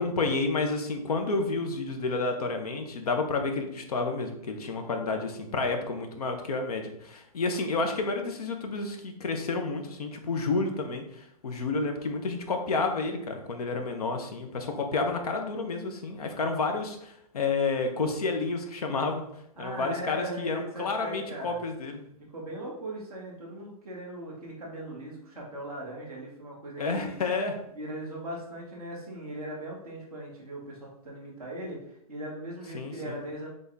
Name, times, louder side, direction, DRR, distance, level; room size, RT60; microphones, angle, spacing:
voice 1, 0.0-19.2 19.6-22.0 26.8-27.5 32.7-33.2, left 3 dB, 80° left, 4 dB, 0.9 m, -30 dB
voice 2, 19.6-21.6 22.3-27.2 27.7-33.5, right 1 dB, 5° left, -12 dB, 0.3 m, -39 dB
4.0 x 3.5 x 3.5 m, 0.76 s
hypercardioid pair, 180°, 19 cm